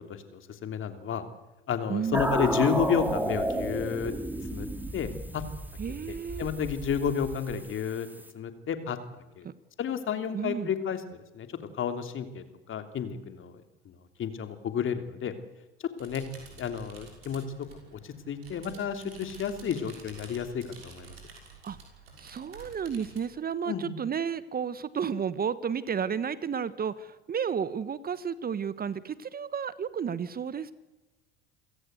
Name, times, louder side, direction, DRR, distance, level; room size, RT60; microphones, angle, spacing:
voice 1, 0.3-1.2 1.7-4.1 4.5-4.7 4.9-5.4 6.1-8.1 8.3-9.0 9.4-9.5 9.8-11.5 11.7-13.9 14.2-15.3 16.0-16.2 16.6-17.4 17.9-21.1 23.7-23.9, left 7 dB, 45° left, 8 dB, 3.1 m, -31 dB
voice 2, 1.9-2.2 5.8-6.5 9.4-9.5 10.3-10.7 21.6-21.8 22.2-30.7, right 7 dB, 30° right, 16 dB, 1.2 m, -32 dB
sound 1, 2.1-8.3, right 1 dB, 5° right, 3.3 m, -33 dB
sound 2, 16.0-23.3, right 4 dB, 85° right, 6.2 m, -50 dB
28.0 x 16.5 x 8.1 m, 1.1 s
hypercardioid pair, 70°, 30 cm